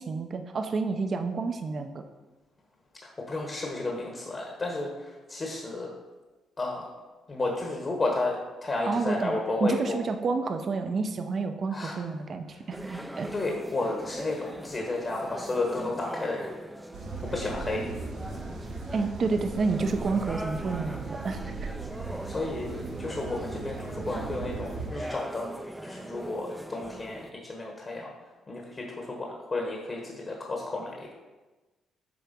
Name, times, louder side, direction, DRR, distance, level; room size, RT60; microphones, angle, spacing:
voice 1, 0.0-2.0 8.9-13.3 18.9-21.6, right 4 dB, 45° right, 7 dB, 0.7 m, -29 dB
voice 2, 3.0-5.9 6.6-6.9 7.3-9.9 11.7-12.0 12.5-12.6 13.3-16.5 17.2-17.8 22.2-22.7 23.0-25.5 25.8-28.1 28.5-31.1, left 2 dB, 35° left, 0 dB, 1.2 m, -32 dB
sound 1, 12.7-27.3, right 1 dB, 5° right, 0.5 m, -41 dB
sound 2, 16.9-24.9, right 4 dB, 75° right, 1.0 m, -38 dB
7.8 x 3.4 x 5.2 m, 1.2 s
cardioid pair, 90°, 0 cm